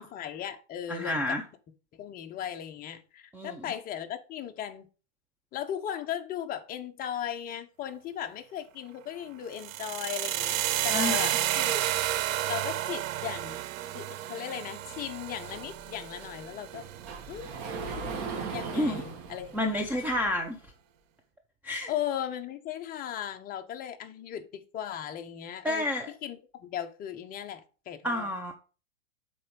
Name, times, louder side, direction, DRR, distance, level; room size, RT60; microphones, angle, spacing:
voice 1, 0.0-1.4 1.9-4.9 5.5-11.9 12.5-13.6 13.9-16.8 17.3-17.5 18.5-19.9 21.9-25.9 26.2-28.3, left 10 dB, 25° left, 0.8 m, -37 dB
voice 2, 0.9-1.4 3.3-3.7 10.9-11.4 18.7-19.0 19.5-20.6 21.6-21.9 25.6-26.1 28.0-28.5, left 1 dB, 5° right, 0.4 m, -30 dB
sound 1, 9.5-17.6, right 13 dB, 85° right, 0.6 m, -31 dB
Sliding door, 15.5-20.4, right 5 dB, 40° right, 2.1 m, -39 dB
7.7 x 4.3 x 5.2 m
hypercardioid pair, 140°, 39 cm